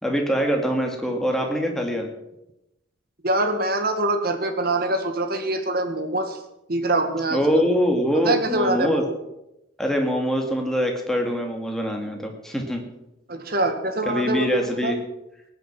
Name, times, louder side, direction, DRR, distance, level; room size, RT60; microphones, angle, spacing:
voice 1, 0.0-2.1 7.3-9.0 9.8-12.8 14.0-15.0, equal, ahead, 2 dB, 2.2 m, -23 dB
voice 2, 3.2-6.4 6.7-7.7 8.2-9.2 13.3-14.9, right 2 dB, 50° right, 7 dB, 1.8 m, -24 dB
18.5 x 9.5 x 6.1 m, 0.89 s
head